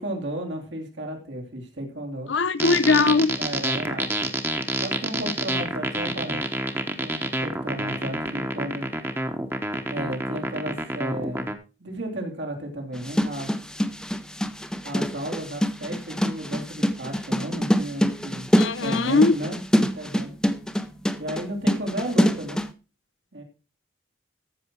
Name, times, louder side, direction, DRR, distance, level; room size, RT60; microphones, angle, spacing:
voice 1, 0.0-2.3 3.4-4.1 4.8-6.4 7.0-8.9 9.9-11.5 11.8-13.5 14.8-18.5 18.8-20.3 21.2-22.6 23.3-23.4, right 1 dB, 80° right, 3.1 m, -33 dB
voice 2, 2.3-3.3 18.6-19.3, left 3 dB, 85° left, 0.7 m, -20 dB
sound 1, 2.6-11.6, right 1 dB, 10° right, 1.0 m, -28 dB
sound 2, 12.9-22.7, equal, 5° left, 0.6 m, -25 dB
14.0 x 6.1 x 4.6 m
head